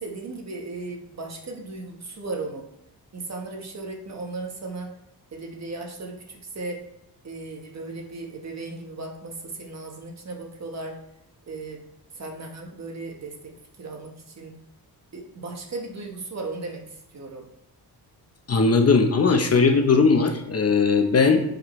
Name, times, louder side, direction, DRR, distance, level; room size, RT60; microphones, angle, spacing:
voice 1, 0.0-2.7 3.1-4.9 5.3-6.8 7.2-11.0 11.5-11.8 12.1-14.5 15.1-17.5, right 3 dB, 40° right, 1 dB, 1.4 m, -36 dB
voice 2, 18.5-21.4, left 4 dB, 40° left, 5 dB, 0.9 m, -19 dB
9.0 x 5.3 x 3.2 m, 0.79 s
wide cardioid pair, 130°, 39 cm